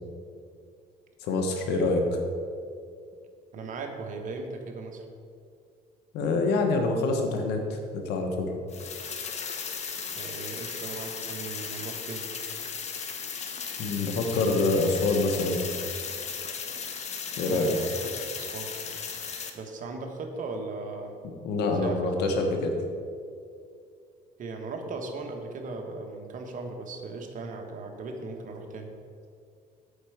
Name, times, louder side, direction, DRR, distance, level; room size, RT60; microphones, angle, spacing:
voice 1, 1.2-2.0 6.1-8.5 13.8-15.6 17.4-17.7 21.4-22.7, left 3 dB, 80° left, 3 dB, 1.3 m, -26 dB
voice 2, 3.5-5.0 10.1-12.3 17.4-18.1 18.4-18.7 19.5-21.2 21.7-22.0 24.4-28.9, right 3 dB, 50° right, 3 dB, 1.3 m, -37 dB
sound 1, 8.7-19.5, left 6 dB, 40° left, 1.0 m, -36 dB
8.6 x 4.4 x 7.2 m, 2.4 s
cardioid pair, 110°, 17 cm